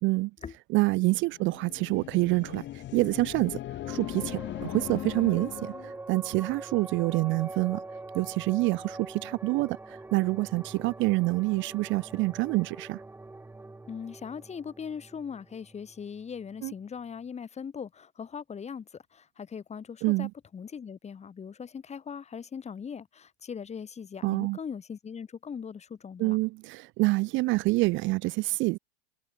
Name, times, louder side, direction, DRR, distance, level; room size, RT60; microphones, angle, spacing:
voice 1, 0.7-3.6 3.9-7.8 8.1-13.0 16.6-16.7 20.0-20.3 24.2-24.6 26.2-28.8, right 22 dB, 40° right, 0.6 m, -27 dB
sound 1, 1.3-5.9, left 13 dB, 35° left, 2.3 m, -39 dB
sound 2, 3.8-16.7, right 2 dB, 5° right, 1.6 m, -44 dB
voice 2, 13.9-26.4, left 6 dB, 20° left, 4.3 m, -40 dB
supercardioid pair, 120°, 31 cm